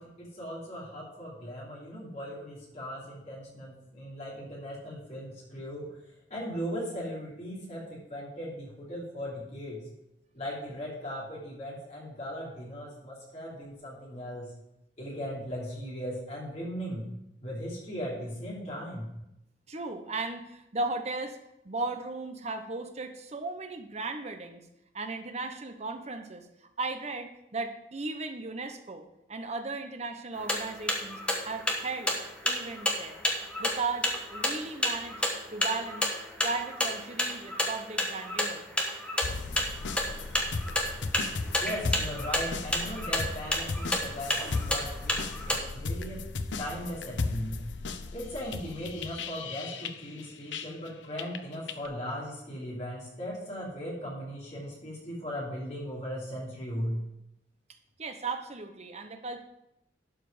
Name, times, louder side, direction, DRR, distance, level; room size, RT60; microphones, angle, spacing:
voice 1, 0.0-5.9 6.3-9.8 10.3-14.5 15.0-17.1 17.4-19.1 41.6-46.2 46.6-47.6 48.1-57.0, equal, 40° left, -6 dB, 3.0 m, -38 dB
voice 2, 19.7-21.4 21.6-24.6 24.9-26.5 26.8-32.2 32.4-33.2 33.6-35.2 35.5-36.1 36.4-38.7 40.2-41.1 58.0-59.4, right 3 dB, 35° right, 7 dB, 0.9 m, -36 dB
sound 1, 30.4-45.6, left 1 dB, 5° left, 1.2 m, -30 dB
sound 2, 39.2-50.9 51.2-51.9, left 3 dB, 85° left, 0.7 m, -36 dB
11.5 x 5.0 x 5.0 m, 0.85 s
head